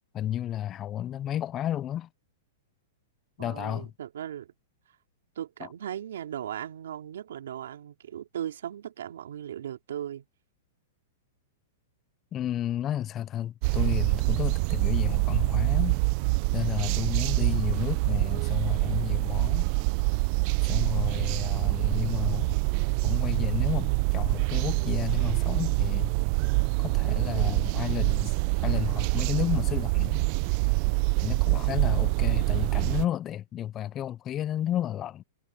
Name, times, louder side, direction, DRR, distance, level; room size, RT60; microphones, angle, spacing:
voice 1, 0.1-2.1 3.4-3.9 12.3-16.0 16.5-19.7 20.6-22.6 23.0-26.1 26.8-28.3 28.6-30.2 31.2-35.2, left 11 dB, 20° left, 0.4 m, -32 dB
voice 2, 3.4-4.5 5.4-10.3 21.1-21.6, right 10 dB, 80° right, 3.5 m, -38 dB
sound 1, 13.6-33.1, right 25 dB, 40° right, 0.5 m, -25 dB
hypercardioid pair, 160°, 0 cm